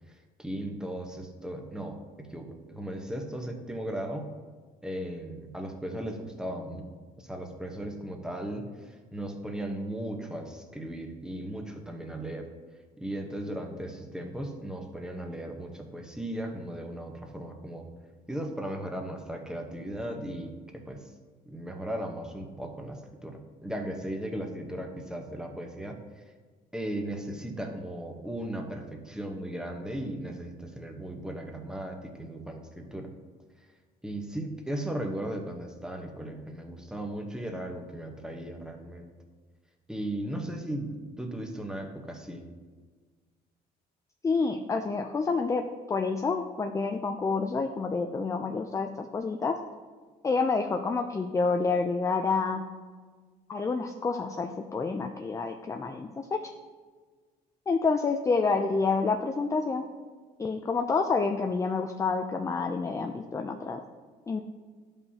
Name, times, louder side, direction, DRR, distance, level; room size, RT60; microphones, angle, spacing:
voice 1, 0.4-4.3 4.8-6.8 7.2-12.5 13.0-17.9 18.3-21.0 21.5-26.0 26.7-33.1 34.0-39.1 39.9-42.4, right 1 dB, 5° right, 2 dB, 0.9 m, -37 dB
voice 2, 44.2-45.6 45.9-49.6 50.2-52.6 53.5-56.4 57.7-59.8 60.4-63.8 64.3-64.4, left 4 dB, 20° left, 5 dB, 0.4 m, -28 dB
11.5 x 5.3 x 2.8 m, 1.5 s
cardioid pair, 110°, 17 cm